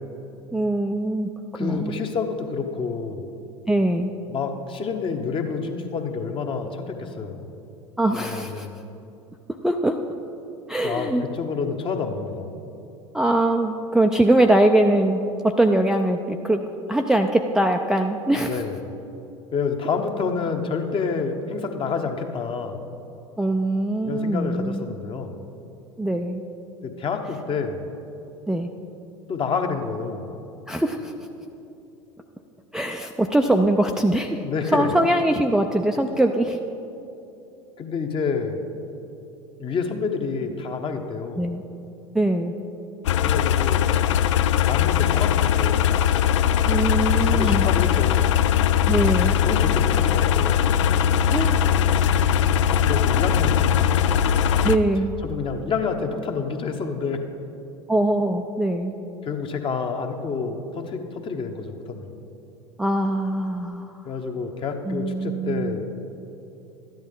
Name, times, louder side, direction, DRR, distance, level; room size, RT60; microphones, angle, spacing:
voice 1, 0.5-2.0 3.7-4.1 8.0-8.7 9.6-10.0 10.7-11.2 13.1-16.6 16.9-18.6 23.4-24.8 26.0-26.4 28.5-28.7 30.7-31.1 32.7-34.5 34.7-36.6 41.4-41.6 42.1-42.5 46.7-47.7 48.9-49.4 51.3-51.6 54.6-55.2 57.9-58.9 62.8-63.9 64.9-65.8, right 1 dB, 5° right, 2 dB, 0.4 m, -22 dB
voice 2, 1.5-3.3 4.3-7.5 8.1-8.8 10.8-12.5 18.4-18.8 19.5-22.8 24.0-25.4 26.8-27.9 29.3-30.3 34.4-34.9 37.8-38.6 39.6-41.5 43.2-44.0 44.7-46.0 47.2-48.3 49.3-50.8 52.9-54.0 55.2-57.2 59.2-62.1 64.0-65.9, left 5 dB, 30° left, 5 dB, 1.0 m, -28 dB
sound 1, 43.0-54.8, left 9 dB, 70° left, 0.4 m, -20 dB
13.0 x 10.5 x 3.7 m, 2.8 s
figure-of-eight pair, 80°, 16 cm